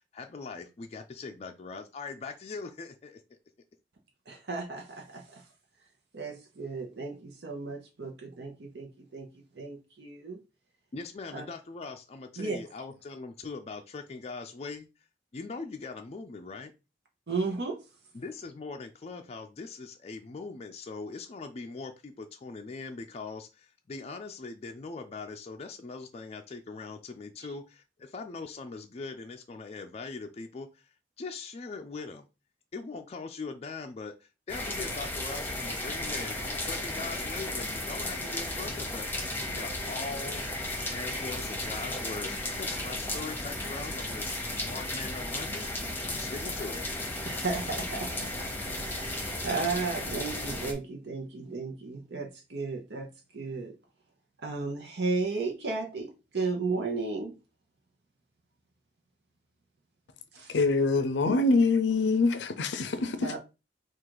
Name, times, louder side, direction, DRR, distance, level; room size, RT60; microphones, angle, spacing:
voice 1, 0.1-3.4 10.9-14.9 15.3-16.7 18.1-32.2 32.7-39.1 39.4-40.4 40.8-45.6 46.0-46.8, left 4 dB, 35° left, 0.4 m, -41 dB
voice 2, 4.3-5.4 6.1-9.3 9.5-10.4 11.3-11.4 12.4-12.6 17.3-17.8 27.4-27.5 40.8-41.0 47.2-48.1 48.7-53.1 53.3-53.7 54.4-57.3 60.3-60.6 61.3-61.4 63.0-63.4, right 3 dB, 70° right, 0.8 m, -34 dB
sound 1, 34.5-50.7, left 1 dB, 10° left, 0.9 m, -34 dB
voice 3, 60.5-63.4, left 3 dB, 90° left, 0.5 m, -25 dB
3.8 x 2.5 x 4.6 m
head